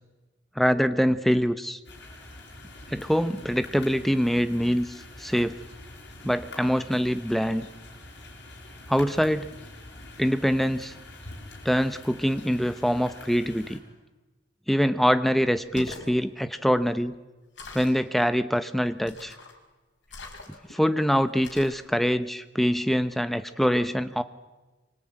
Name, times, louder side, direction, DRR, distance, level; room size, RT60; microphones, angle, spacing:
voice 1, 0.6-1.8 2.9-5.6 6.2-7.7 8.9-9.5 10.2-10.9 11.6-13.8 14.7-17.1 17.7-19.3 20.7-24.2, equal, ahead, 11 dB, 0.8 m, -24 dB
sound 1, 1.8-13.8, left 2 dB, 65° left, 7.1 m, -45 dB
sound 2, 15.6-16.1 17.6-18.0 19.1-19.6 20.1-20.8 21.4-21.8, left 2 dB, 80° left, 5.5 m, -42 dB
25.5 x 24.5 x 9.0 m, 1.2 s
head